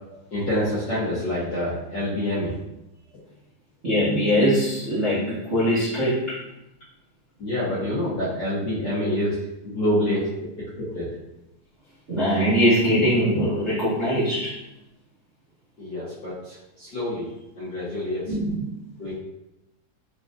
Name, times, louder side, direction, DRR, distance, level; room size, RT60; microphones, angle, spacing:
voice 1, 0.3-2.5 7.4-10.3 10.8-11.1 15.8-17.3 17.6-18.3 19.0-19.1, left 1 dB, 60° left, -11 dB, 1.1 m, -27 dB
voice 2, 3.8-6.4 12.1-14.5 18.3-18.6, equal, 60° right, -11 dB, 0.7 m, -22 dB
4.7 x 3.9 x 2.6 m, 0.91 s
omnidirectional pair, 3.6 m